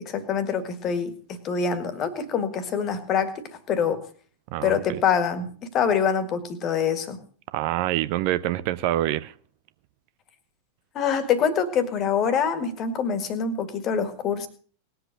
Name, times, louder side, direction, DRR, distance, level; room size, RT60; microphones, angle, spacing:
voice 1, 0.0-4.1 4.6-7.2 10.9-14.5, left 7 dB, 30° left, 12 dB, 1.9 m, -25 dB
voice 2, 4.5-5.0 7.5-9.3, right 14 dB, 45° right, 15 dB, 0.6 m, -26 dB
19.5 x 7.8 x 6.5 m, 0.43 s
figure-of-eight pair, 90°, 0 cm